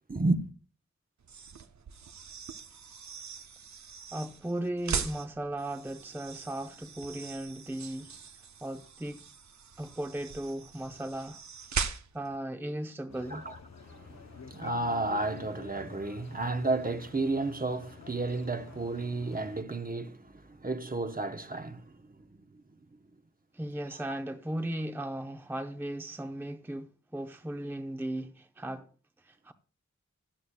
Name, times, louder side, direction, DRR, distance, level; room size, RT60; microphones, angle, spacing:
voice 1, 0.1-0.4 13.3-13.6 13.9-21.9, right 2 dB, 30° right, 0.9 m, -32 dB
sound 1, 1.2-12.4, right 6 dB, 70° right, 0.7 m, -40 dB
voice 2, 4.1-8.1 8.6-9.3 9.8-13.5 23.5-28.9 29.2-29.5, right 1 dB, 5° right, 0.7 m, -37 dB
sound 2, 13.1-19.6, left 5 dB, 65° left, 0.7 m, -49 dB
16.0 x 11.0 x 2.2 m
wide cardioid pair, 60°, 29 cm